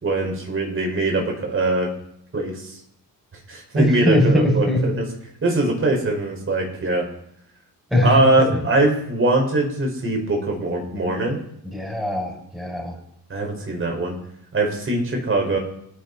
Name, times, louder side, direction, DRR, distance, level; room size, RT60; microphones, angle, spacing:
voice 1, 0.0-1.9 2.3-2.7 3.5-5.1 5.4-7.0 8.0-11.4 13.3-14.2 14.5-15.6, right 2 dB, 35° right, 1 dB, 5.5 m, -22 dB
voice 2, 3.8-4.8 7.9-8.6 11.7-12.9, equal, ahead, -2 dB, 6.7 m, -21 dB
27.0 x 10.5 x 4.3 m, 0.73 s
cardioid pair, 115°, 36 cm